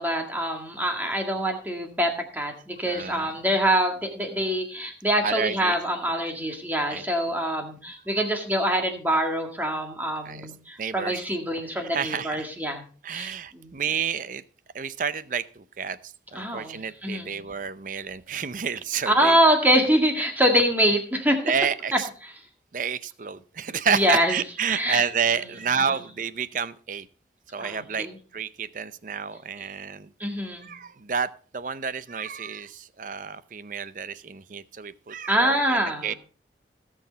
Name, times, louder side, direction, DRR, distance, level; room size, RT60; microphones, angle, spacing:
voice 1, 0.0-12.8 13.1-13.8 16.3-17.4 19.1-21.5 21.9-22.3 23.9-24.4 24.7-25.0 25.4-25.5 27.6-28.2 30.2-30.7 35.3-36.1, equal, 10° right, 3 dB, 1.9 m, -25 dB
voice 2, 2.9-3.3 5.2-5.8 6.9-7.0 10.2-10.5 10.8-11.2 11.9-12.5 13.0-14.4 14.7-19.4 21.4-22.1 22.7-27.1 27.5-28.1 28.3-30.1 30.6-36.1, right 6 dB, 45° right, 15 dB, 0.6 m, -30 dB
18.0 x 6.4 x 3.9 m, 0.41 s
head